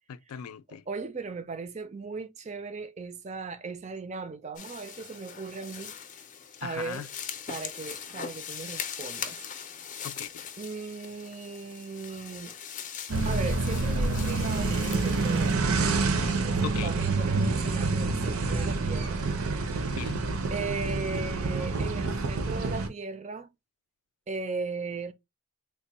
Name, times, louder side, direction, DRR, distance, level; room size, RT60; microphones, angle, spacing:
voice 1, 0.1-0.8 6.6-7.1 10.0-10.4 16.6-16.9 19.9-20.3, left 8 dB, 90° left, 0.4 m, -38 dB
voice 2, 0.7-5.9 6.6-7.1 7.5-9.4 10.6-12.6 13.2-15.9 16.4-19.2 20.5-23.5 24.3-25.1, right 4 dB, 30° right, 0.4 m, -37 dB
sound 1, 4.6-15.6, left 8 dB, 35° left, 0.5 m, -41 dB
sound 2, 13.1-22.9, right 3 dB, 75° right, 0.6 m, -27 dB
3.4 x 2.1 x 4.0 m
head